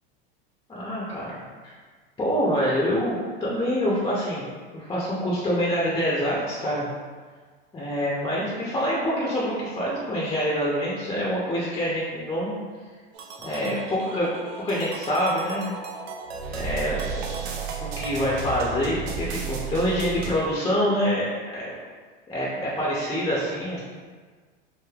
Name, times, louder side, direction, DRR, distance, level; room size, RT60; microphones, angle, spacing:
voice 1, 0.7-1.7 2.2-4.4 4.7-6.9 7.7-12.5 13.4-14.3 14.6-15.8 16.5-17.3 17.8-21.3 21.5-21.7 22.3-23.8, equal, 15° left, -6 dB, 0.5 m, -26 dB
sound 1, 13.1-20.3, right 5 dB, 85° right, 0.5 m, -34 dB
3.2 x 2.6 x 2.3 m, 1.5 s
supercardioid pair, 115°, 30 cm